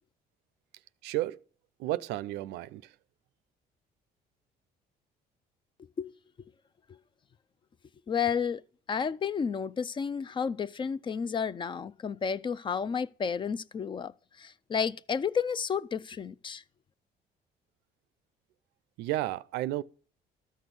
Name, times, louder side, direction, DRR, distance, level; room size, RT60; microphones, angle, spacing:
voice 1, 1.0-1.4 1.8-2.8 19.0-19.8, right 16 dB, 85° right, 0.5 m, -32 dB
voice 2, 8.1-8.6 8.9-14.1 14.4-16.6, left 6 dB, 30° left, 0.4 m, -31 dB
13.0 x 6.2 x 5.4 m
cardioid pair, 110°, 17 cm